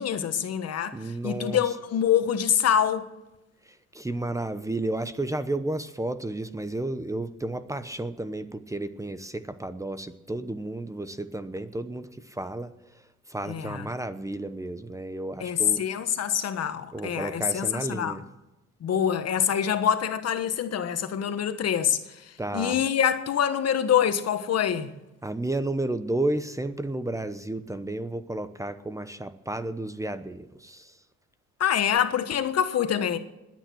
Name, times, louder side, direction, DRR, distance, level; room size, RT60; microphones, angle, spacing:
voice 1, 0.0-3.1 13.5-13.9 15.4-18.2 18.8-24.9 31.6-33.2, left 9 dB, 55° left, 1.4 m, -25 dB
voice 2, 0.9-1.6 3.9-12.7 13.3-15.8 16.9-18.2 22.4-22.8 25.2-30.9, right 2 dB, 10° right, 0.9 m, -32 dB
20.5 x 9.2 x 6.3 m
cardioid pair, 90°, 29 cm